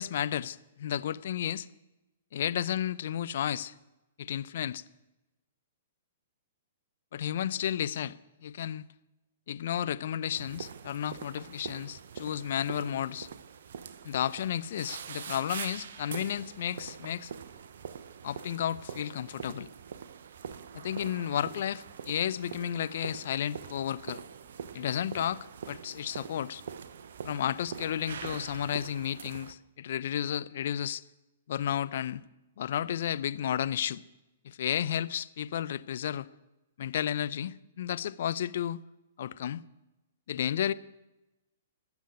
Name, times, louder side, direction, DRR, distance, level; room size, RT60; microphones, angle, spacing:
voice 1, 0.0-1.7 2.3-3.7 4.2-4.8 7.1-8.9 9.5-13.3 14.0-17.3 18.2-19.7 20.7-24.2 24.7-26.6 27.2-31.0 31.5-32.2 32.6-34.0 34.4-36.3 36.8-38.8 39.2-39.6 40.3-40.7, left 10 dB, 60° left, 0.7 m, -32 dB
sound 1, 10.3-29.5, right 7 dB, 65° right, 1.0 m, -44 dB
19.0 x 7.3 x 9.3 m
figure-of-eight pair, 115°, 0 cm